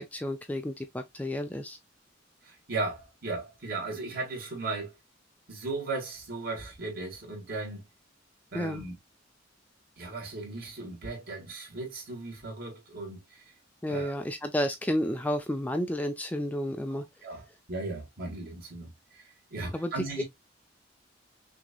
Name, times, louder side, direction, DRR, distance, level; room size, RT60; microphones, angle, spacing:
voice 1, 0.0-1.8 8.5-8.8 13.8-17.0 19.7-20.2, equal, 10° left, 0.4 m, -31 dB
voice 2, 2.4-4.9 5.5-7.8 8.5-8.9 10.0-13.4 13.9-14.1 16.9-19.2 19.5-20.2, right 3 dB, 50° right, 2.3 m, -36 dB
5.9 x 2.8 x 2.4 m
head